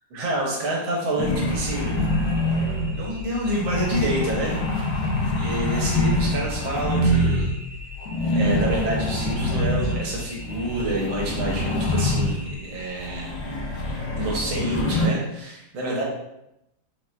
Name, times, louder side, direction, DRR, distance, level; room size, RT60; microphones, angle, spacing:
voice 1, 0.1-2.2 2.9-5.1 5.4-7.5 8.3-13.3 14.2-16.0, right 1 dB, 80° right, -3 dB, 1.8 m, -28 dB
sound 1, 1.2-3.1 3.5-7.6 8.0-12.6 13.0-15.1, left 1 dB, 65° left, 1.2 m, -25 dB
sound 2, 1.5-14.4, left 4 dB, 30° right, 1.3 m, -39 dB
4.5 x 2.4 x 3.2 m, 0.85 s
omnidirectional pair, 2.1 m